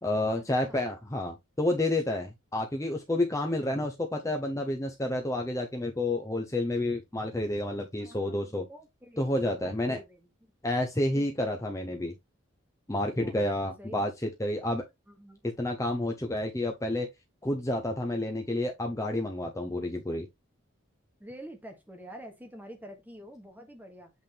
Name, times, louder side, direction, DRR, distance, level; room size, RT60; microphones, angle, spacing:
voice 1, 0.0-8.6 9.2-10.0 10.6-12.1 12.9-14.8 15.4-17.1 17.4-20.3, left 1 dB, 15° left, 0.7 m, -30 dB
voice 2, 8.0-10.3 11.1-11.5 13.2-13.5 13.8-14.1 15.1-15.4 21.2-24.1, equal, 10° right, 1.2 m, -48 dB
8.1 x 3.5 x 3.3 m
head